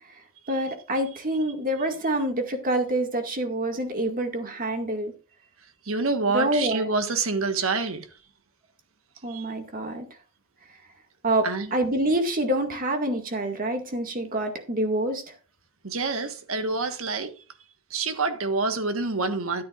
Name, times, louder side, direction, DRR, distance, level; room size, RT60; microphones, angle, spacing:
voice 1, 0.5-5.1 6.3-6.9 9.2-10.1 11.2-15.2, right 1 dB, 40° right, 2.0 m, -26 dB
voice 2, 5.9-8.1 9.3-9.4 11.4-11.7 15.8-17.3 17.9-19.6, right 3 dB, 70° right, 1.4 m, -27 dB
13.0 x 10.0 x 2.5 m
head